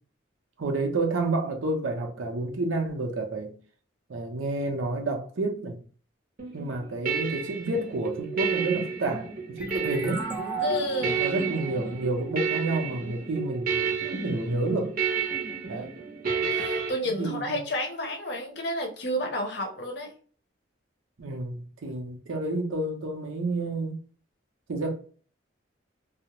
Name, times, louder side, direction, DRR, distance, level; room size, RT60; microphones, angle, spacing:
voice 1, 0.6-3.6 4.1-5.8 6.5-9.3 9.6-10.3 11.0-15.0 15.7-15.9 17.2-17.6 21.2-24.0 24.7-24.9, right 2 dB, 90° right, 0.6 m, -30 dB
sound 1, 6.4-16.9, right 5 dB, 45° right, 0.6 m, -31 dB
sound 2, 9.6-13.0, right 5 dB, 10° right, 0.4 m, -36 dB
voice 2, 10.6-11.2 16.5-20.1, left 1 dB, 60° left, 0.6 m, -30 dB
2.3 x 2.0 x 2.8 m
head